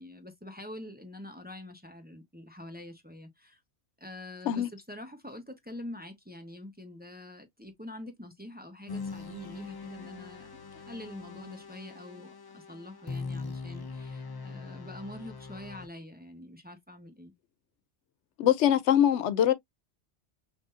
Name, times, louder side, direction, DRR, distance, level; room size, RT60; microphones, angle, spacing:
voice 1, 0.0-3.6 4.0-17.3, left 1 dB, 10° right, 0.9 m, -45 dB
sound 1, 8.9-15.9, left 4 dB, 40° left, 0.3 m, -41 dB
voice 2, 18.4-19.5, left 10 dB, 85° left, 0.9 m, -23 dB
6.1 x 2.7 x 2.6 m
omnidirectional pair, 1.2 m